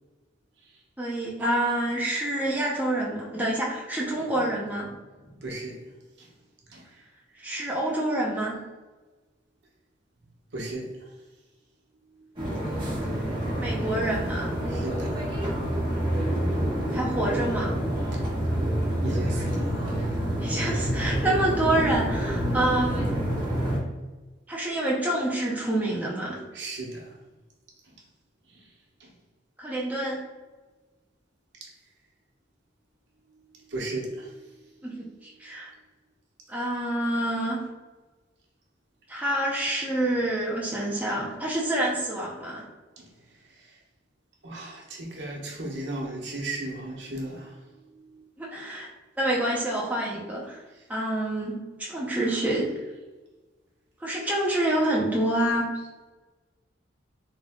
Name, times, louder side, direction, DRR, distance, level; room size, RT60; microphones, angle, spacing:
voice 1, 1.0-4.9 7.4-8.6 13.6-14.6 16.9-17.8 20.4-23.1 24.5-26.4 29.6-30.2 34.8-35.7 36.5-37.6 39.1-42.6 48.4-48.9 49.2-50.6 50.9-52.7 54.0-55.7, right 1 dB, 10° right, -5 dB, 0.7 m, -27 dB
voice 2, 5.2-5.9 6.2-6.3 6.7-7.0 7.3-7.4 10.5-11.1 12.1-13.2 14.7-15.3 18.1-18.2 19.0-20.2 26.5-27.2 27.8-27.9 28.5-28.7 29.0-29.1 31.6-31.7 33.3-34.9 43.0-43.8 44.4-48.3 50.7-50.8, right 2 dB, 70° right, -2 dB, 1.0 m, -38 dB
sound 1, 12.4-23.8, equal, 25° right, 1.4 m, -27 dB
3.7 x 3.0 x 3.6 m, 1.2 s
head